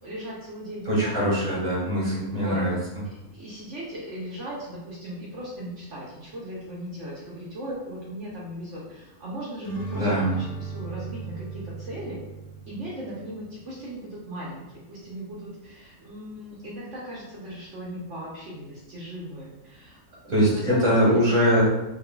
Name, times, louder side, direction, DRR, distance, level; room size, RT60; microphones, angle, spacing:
voice 1, 0.0-1.6 2.3-2.6 3.0-12.2 12.7-20.0 20.2-21.3, right 1 dB, 60° right, -6 dB, 1.1 m, -38 dB
voice 2, 0.8-2.7 9.9-10.3 20.3-21.6, equal, 30° right, -7 dB, 1.5 m, -22 dB
sound 1, 9.6-13.3, right 4 dB, 60° left, 0.4 m, -35 dB
6.3 x 2.5 x 2.2 m, 0.96 s
omnidirectional pair, 1.5 m